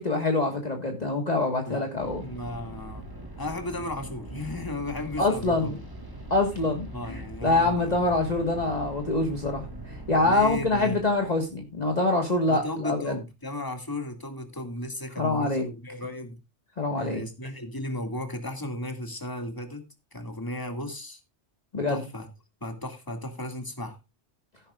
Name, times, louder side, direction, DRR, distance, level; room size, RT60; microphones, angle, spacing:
voice 1, 0.0-2.2 5.2-5.7 6.3-13.1 15.2-15.6 16.8-17.2 21.7-22.0, left 2 dB, 35° left, 3 dB, 1.7 m, -25 dB
sound 1, 2.0-12.7, right 1 dB, 20° right, 2.4 m, -42 dB
voice 2, 2.2-3.1 3.4-5.8 6.5-6.6 6.9-8.0 10.2-11.0 12.5-16.4 17.0-19.9 20.1-21.2 21.9-22.3 22.6-24.0, left 1 dB, 20° left, 5 dB, 2.2 m, -35 dB
15.5 x 10.5 x 2.4 m, 0.25 s
omnidirectional pair, 1.2 m